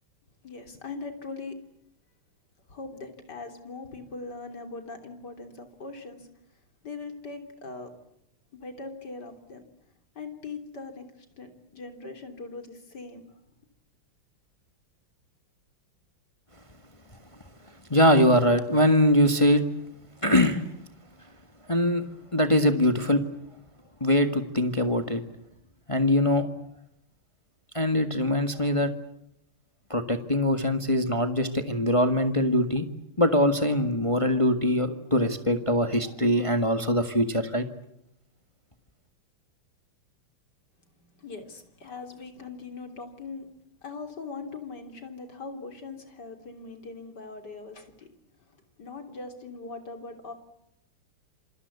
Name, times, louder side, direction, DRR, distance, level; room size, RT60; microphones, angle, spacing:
voice 1, 0.4-1.5 2.7-6.3 6.8-7.9 8.5-9.6 10.2-11.1 11.3-13.2 41.1-43.5 43.8-48.1 48.8-50.3, left 3 dB, 50° left, 6 dB, 3.9 m, -40 dB
voice 2, 17.9-19.6 20.2-20.6 21.7-22.0 22.3-23.2 24.0-25.2 25.9-26.5 27.7-28.9 29.9-32.9 33.2-37.7, left 1 dB, 15° left, 7 dB, 1.5 m, -22 dB
27.5 x 25.0 x 8.3 m, 0.78 s
omnidirectional pair, 2.3 m